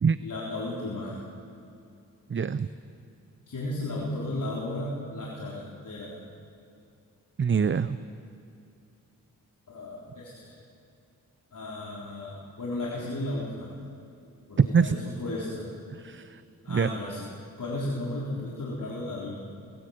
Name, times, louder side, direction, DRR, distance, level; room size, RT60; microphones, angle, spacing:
voice 1, 0.2-1.3 3.5-6.2 9.7-10.6 11.5-13.7 14.5-15.7 16.6-17.3 17.6-19.4, left 1 dB, 60° left, -6 dB, 3.7 m, -34 dB
voice 2, 2.3-2.7 7.4-8.0 14.6-15.0 15.9-16.4 16.7-16.9, right 6 dB, 35° right, 14 dB, 0.6 m, -24 dB
19.5 x 17.5 x 7.9 m, 2.5 s
cardioid pair, 55°, 35 cm